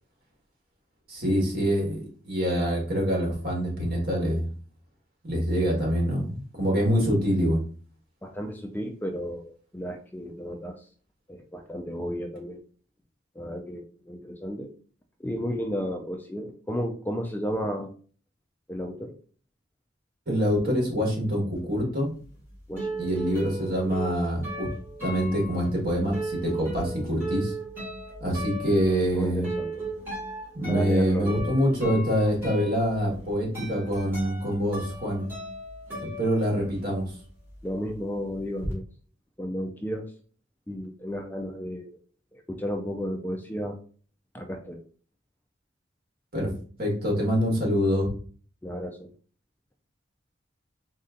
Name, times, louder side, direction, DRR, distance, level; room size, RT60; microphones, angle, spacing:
voice 1, 1.1-4.4 5.2-7.6 20.3-22.1 23.0-24.7 25.0-27.5 28.2-29.5 30.5-35.2 36.0-37.1 46.3-46.5 46.8-48.1, equal, 50° right, -1 dB, 1.7 m, -25 dB
voice 2, 8.2-10.8 11.3-12.6 13.4-14.7 15.2-17.9 18.7-19.2 22.7-23.2 29.1-29.9 30.7-31.5 37.6-38.8 39.4-40.1 40.7-42.0 42.3-43.8 44.3-44.8 48.6-49.1, equal, 10° left, 4 dB, 0.4 m, -33 dB
sound 1, 22.2-37.0 37.3-38.7, right 2 dB, 10° right, 2.1 m, -37 dB
4.2 x 2.7 x 3.7 m, 0.42 s
head